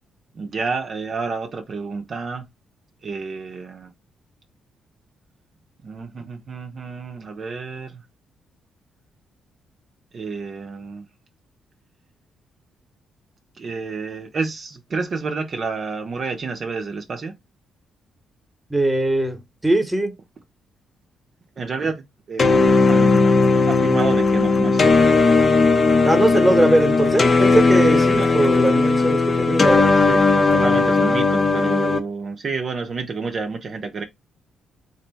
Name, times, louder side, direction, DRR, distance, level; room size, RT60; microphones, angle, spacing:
voice 1, 0.3-2.5 3.0-3.9 5.8-8.0 10.1-11.1 13.6-17.3 21.6-23.4 23.7-24.9 28.1-28.3 30.0-34.0, right 4 dB, 50° right, 0.7 m, -29 dB
voice 2, 18.7-20.1 26.0-30.0, right 1 dB, 10° right, 1.1 m, -20 dB
sound 1, 22.4-32.0, left 3 dB, 40° left, 0.7 m, -17 dB
3.3 x 2.6 x 4.0 m
cardioid pair, 75°, 0 cm